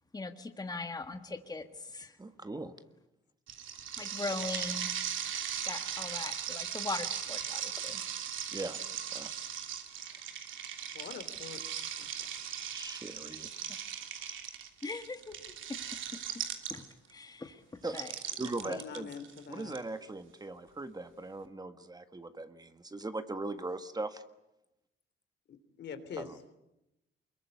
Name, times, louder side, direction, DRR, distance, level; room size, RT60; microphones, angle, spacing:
voice 1, 0.1-1.6 1.9-2.1 4.0-4.9 5.6-8.1 14.8-15.3 16.7-16.8 17.1-17.6 17.9-18.1, left 3 dB, 20° left, 7 dB, 1.8 m, -40 dB
voice 2, 2.2-2.7 8.5-8.8 9.1-9.3 9.9-10.3 12.7-13.5 17.8-18.0 18.4-19.1 19.5-24.2 26.2-26.6, right 2 dB, 20° right, 9 dB, 1.6 m, -40 dB
sound 1, 3.5-17.1 17.9-19.8, right 9 dB, 75° right, 3.0 m, -38 dB
voice 3, 10.9-11.6 12.0-12.1 18.6-19.7 25.5-26.3, left 7 dB, 60° left, 10 dB, 3.2 m, -44 dB
24.0 x 22.0 x 9.6 m, 0.91 s
cardioid pair, 90°, 20 cm